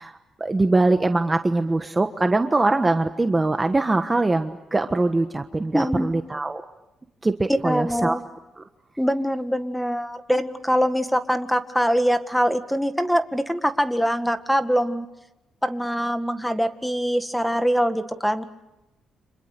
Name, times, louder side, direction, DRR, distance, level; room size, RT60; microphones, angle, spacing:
voice 1, 0.0-6.6 7.2-8.2 8.6-8.7, right 2 dB, 20° right, 7 dB, 1.3 m, -22 dB
voice 2, 5.7-6.1 7.6-8.2 9.0-15.1 15.6-18.5, equal, ahead, 9 dB, 1.9 m, -23 dB
30.0 x 26.5 x 6.8 m, 0.94 s
cardioid pair, 90°, 0 cm